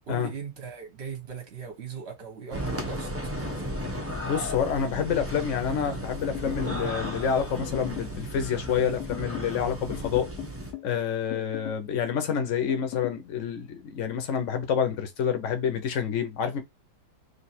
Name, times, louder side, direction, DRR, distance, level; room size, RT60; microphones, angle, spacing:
voice 1, 0.1-3.8, right 6 dB, 45° right, 1.1 m, -39 dB
sound 1, 2.5-10.7, equal, 20° right, 0.4 m, -34 dB
voice 2, 4.2-10.3 10.8-16.6, left 7 dB, 55° left, 1.1 m, -28 dB
sound 2, 6.2-7.2 7.6-8.2 9.0-9.6 9.9-10.9 11.3-11.9 12.7-13.2, left 16 dB, 75° left, 1.1 m, -39 dB
3.3 x 2.8 x 4.3 m
omnidirectional pair, 1.8 m